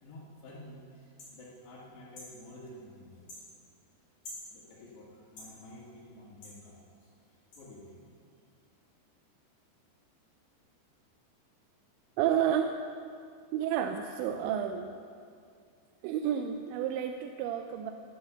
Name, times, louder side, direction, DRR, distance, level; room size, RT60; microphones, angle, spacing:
voice 1, 0.0-3.5 4.5-8.0, left 1 dB, 80° left, -7 dB, 4.2 m, -51 dB
sound 1, 1.2-1.3 2.1-2.3 3.3-3.4 4.2-4.5 5.4-5.5 6.4-6.6 7.5-7.6, left 1 dB, 40° left, 4.3 m, -46 dB
voice 2, 12.2-12.7 13.5-15.0 16.0-17.9, right 9 dB, 90° right, 6 dB, 2.9 m, -30 dB
12.5 x 9.8 x 6.8 m, 2.3 s
omnidirectional pair, 5.0 m